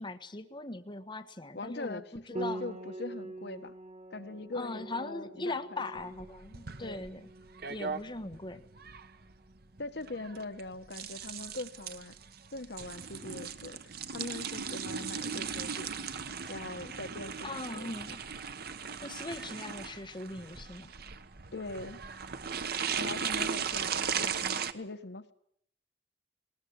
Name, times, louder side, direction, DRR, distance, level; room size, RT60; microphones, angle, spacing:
voice 1, 0.0-2.6 4.5-7.2 7.7-8.6 17.4-18.2 19.0-20.9, left 2 dB, 25° left, 6 dB, 1.2 m, -40 dB
voice 2, 1.5-3.7 4.1-5.8 6.8-7.0 9.8-12.2 12.5-15.9 16.5-17.9 21.5-22.0 22.9-25.3, left 2 dB, 65° left, 9 dB, 1.4 m, -42 dB
Piano, 2.3-11.7, right 1 dB, 40° right, 2.8 m, -46 dB
sound 1, 6.0-24.7, right 6 dB, 60° right, 1.1 m, -37 dB
20.0 x 19.0 x 9.5 m, 0.66 s
head